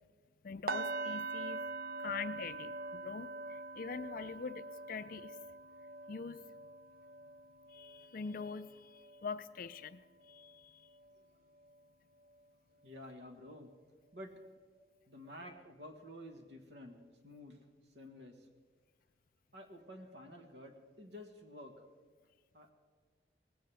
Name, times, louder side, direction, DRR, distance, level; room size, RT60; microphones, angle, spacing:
voice 1, 0.4-1.6 2.0-5.4 6.1-6.4 7.7-10.0 10.3-10.9, left 5 dB, 50° left, 14 dB, 0.4 m, -44 dB
sound 1, 0.7-10.6 10.9-11.2 11.7-11.8, right 3 dB, 55° right, 0.6 m, -44 dB
voice 2, 12.8-13.7 14.1-14.4 15.1-17.6 17.9-18.5 19.5-21.7 22.5-22.7, left 1 dB, 70° right, 5 dB, 1.6 m, -51 dB
18.5 x 16.0 x 3.4 m, 1.5 s
head